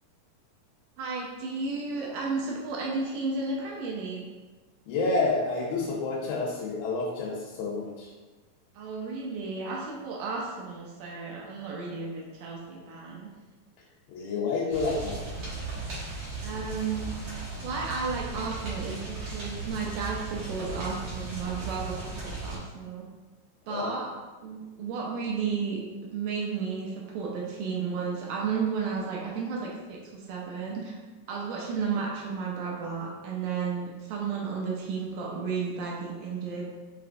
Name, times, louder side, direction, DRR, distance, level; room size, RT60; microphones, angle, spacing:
voice 1, 1.0-4.3 8.7-13.3 16.4-23.1 23.7-24.1 24.4-31.0 31.3-36.6, right 5 dB, 80° right, -2 dB, 2.1 m, -33 dB
voice 2, 4.9-8.1 14.1-15.4 23.7-23.9, left 3 dB, 85° left, -3 dB, 2.4 m, -29 dB
sound 1, 14.7-22.6, right 3 dB, 55° right, 2.0 m, -36 dB
5.7 x 3.0 x 2.5 m, 1.3 s
omnidirectional pair, 4.0 m